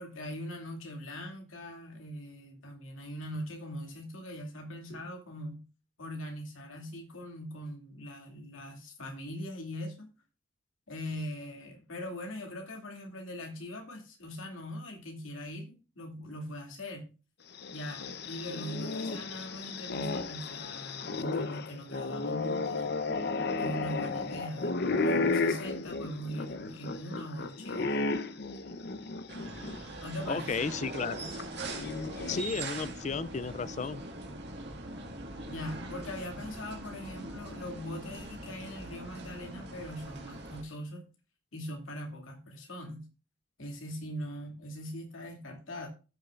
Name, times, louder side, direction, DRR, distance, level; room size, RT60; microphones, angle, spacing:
voice 1, 0.0-5.6 6.0-10.1 10.9-17.1 17.7-22.9 23.6-28.0 30.0-30.6 35.5-41.0 41.5-43.0 43.6-45.9, equal, 75° left, 2.6 m, -41 dB
sound 1, 17.5-29.8 30.2-30.3 31.4-32.7, left 3 dB, 50° left, 0.8 m, -33 dB
sound 2, 29.3-40.6, right 2 dB, 55° right, 2.0 m, -42 dB
voice 2, 30.3-31.3 32.3-34.0, left 5 dB, 35° left, 0.4 m, -33 dB
14.0 x 6.6 x 2.5 m
head